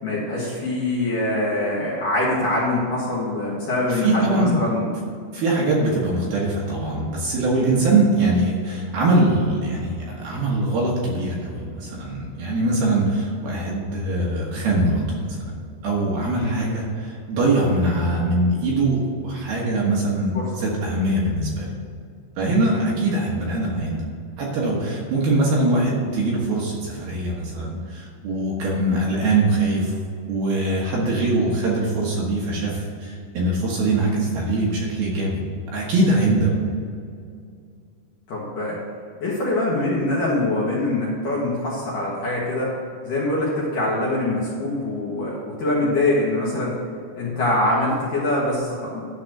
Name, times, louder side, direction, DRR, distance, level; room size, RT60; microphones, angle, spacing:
voice 1, 0.0-4.9 16.4-16.5 20.3-20.5 22.7-22.8 38.3-38.8 39.2-42.7 43.0-46.7 47.1-49.0, left 2 dB, 60° left, -6 dB, 2.5 m, -24 dB
voice 2, 3.9-4.6 5.3-15.5 15.8-21.7 22.4-24.0 24.4-29.9 30.3-35.4 35.7-36.5, right 2 dB, 65° right, -4 dB, 2.8 m, -22 dB
11.5 x 4.2 x 7.7 m, 2.3 s
omnidirectional pair, 5.5 m